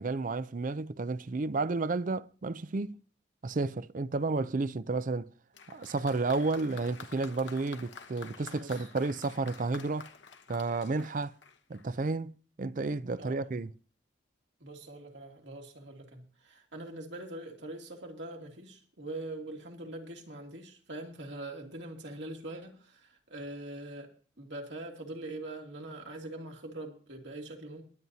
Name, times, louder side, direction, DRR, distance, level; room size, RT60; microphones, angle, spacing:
voice 1, 0.0-3.0 3.4-5.3 5.7-10.1 10.5-11.3 11.7-13.7, right 3 dB, 45° right, 0.5 m, -32 dB
Applause, 5.5-12.0, left 5 dB, 70° left, 1.0 m, -49 dB
voice 2, 8.4-8.9 13.2-13.6 14.6-24.1 24.4-27.8, right 2 dB, 70° right, 2.5 m, -43 dB
21.5 x 9.4 x 2.8 m
head